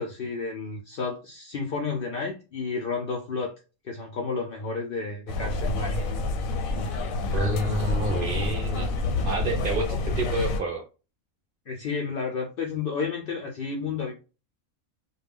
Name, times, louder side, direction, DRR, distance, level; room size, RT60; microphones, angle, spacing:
voice 1, 0.0-3.5 3.8-6.0 11.7-14.2, left 4 dB, 65° left, 1 dB, 0.5 m, -31 dB
sound 1, 5.3-10.6, left 2 dB, 85° left, 1.0 m, -28 dB
voice 2, 7.3-8.9 9.2-10.8, right 1 dB, 55° right, 3 dB, 0.7 m, -29 dB
2.3 x 2.2 x 3.4 m, 0.32 s
omnidirectional pair, 1.4 m